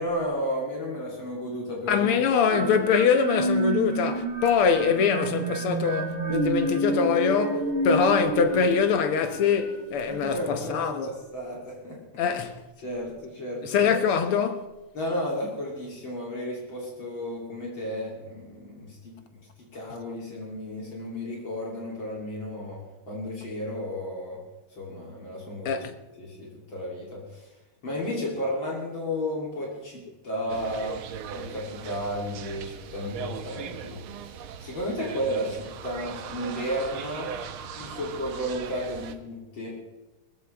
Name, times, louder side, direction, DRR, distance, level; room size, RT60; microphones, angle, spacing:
voice 1, 0.0-2.1 10.1-12.0 12.8-13.9 14.9-19.2 19.7-24.4 24.7-25.9 26.2-27.5 27.8-31.0 31.3-37.3 37.7-39.8, equal, 65° left, 3.9 m, -33 dB
voice 2, 1.9-11.1 12.2-12.6 13.6-14.7 25.7-25.9, left 6 dB, 85° left, 2.0 m, -23 dB
sound 1, 2.5-10.2, right 1 dB, 30° right, 1.6 m, -29 dB
sound 2, 30.5-39.2, right 7 dB, 80° right, 1.7 m, -39 dB
19.5 x 15.0 x 3.5 m
omnidirectional pair, 2.4 m